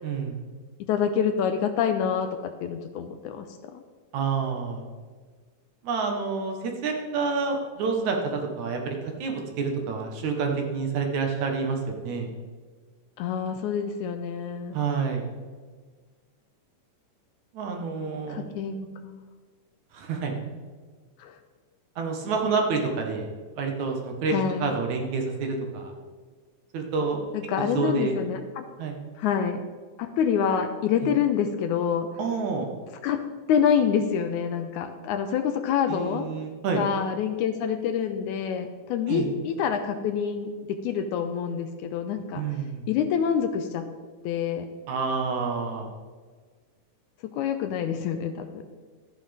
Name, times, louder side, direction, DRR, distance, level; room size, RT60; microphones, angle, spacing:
voice 1, 0.0-0.4 4.1-4.9 5.8-12.3 14.7-15.3 17.5-18.5 19.9-20.3 22.0-23.3 23.5-25.9 26.7-27.3 27.7-28.1 28.8-29.0 32.2-32.7 35.9-36.8 39.1-39.3 42.4-42.9 44.9-45.9, right 4 dB, 70° right, 2 dB, 2.5 m, -28 dB
voice 2, 0.8-3.5 3.7-3.8 13.2-14.8 18.3-19.2 21.2-21.4 24.3-24.7 27.3-28.6 29.2-29.6 30.0-32.1 33.0-33.2 33.5-36.3 36.8-42.4 42.9-43.9 44.2-44.7 47.2-48.6, left 7 dB, 80° left, 8 dB, 1.9 m, -27 dB
13.0 x 9.1 x 3.4 m, 1.5 s
omnidirectional pair, 3.7 m